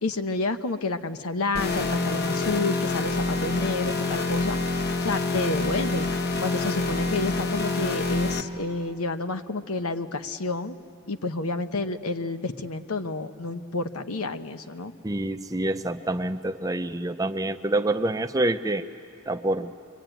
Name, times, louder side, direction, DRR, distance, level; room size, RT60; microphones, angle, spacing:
voice 1, 0.0-4.6 5.0-6.1 6.4-10.7 11.1-14.9, left 3 dB, 80° left, 8 dB, 1.0 m, -29 dB
sound 1, 1.5-8.4, left 3 dB, 45° left, 1.2 m, -27 dB
voice 2, 15.0-18.8 19.3-19.7, right 2 dB, 15° right, 8 dB, 0.6 m, -27 dB
25.0 x 24.0 x 9.1 m, 2.5 s
head